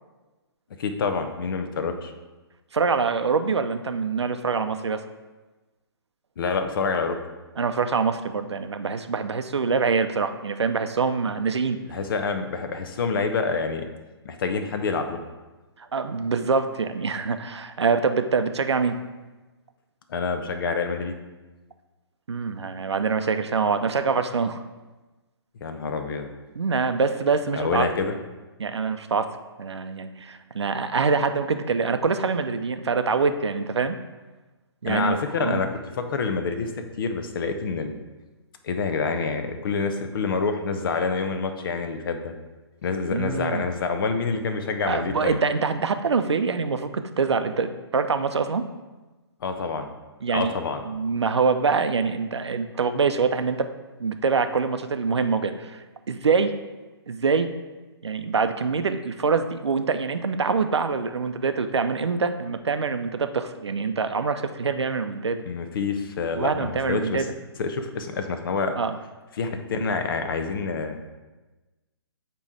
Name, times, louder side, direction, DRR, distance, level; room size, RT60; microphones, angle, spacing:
voice 1, 0.8-2.1 6.4-7.2 11.9-13.8 14.2-15.2 20.1-21.2 25.6-26.3 27.6-28.1 34.8-35.7 36.0-36.7 37.0-37.9 38.6-42.3 42.8-45.4 49.4-49.9 50.3-50.8 65.5-67.2 67.6-68.7 69.4-71.0, left 4 dB, 55° left, 7 dB, 0.8 m, -27 dB
voice 2, 2.7-5.0 7.6-11.8 15.8-19.0 22.3-24.6 26.6-27.9 28.6-29.3 29.6-34.0 34.8-35.7 43.1-43.7 44.9-48.6 50.2-50.5 50.8-53.7 54.0-56.5 57.1-57.5 58.0-65.4 66.3-67.3 68.8-69.0, right 5 dB, 80° right, 9 dB, 0.5 m, -25 dB
8.6 x 3.1 x 4.8 m, 1.2 s
figure-of-eight pair, 135°, 14 cm